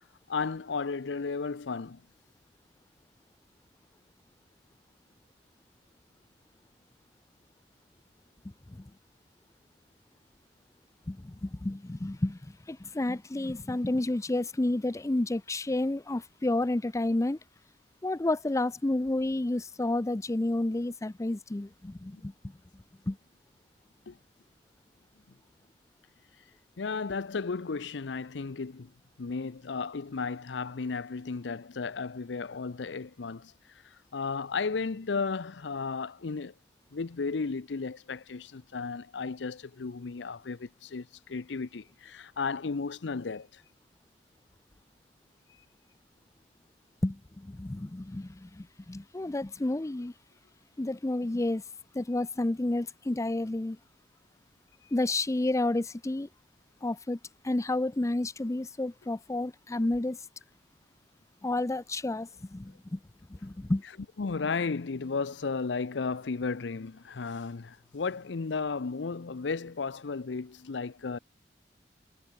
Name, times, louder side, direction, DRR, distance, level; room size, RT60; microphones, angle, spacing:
voice 1, 0.3-2.0 24.1-24.2 26.8-28.9 29.2-33.5 33.8-36.5 36.9-43.6 64.2-71.2, left 4 dB, 80° left, 0.6 m, -34 dB
voice 2, 11.1-17.4 18.0-22.6 23.1-23.2 47.0-50.1 50.8-51.6 51.9-53.8 54.9-56.3 56.8-57.2 57.4-60.2 61.4-63.0 63.3-63.8, left 2 dB, 15° left, 0.5 m, -30 dB
head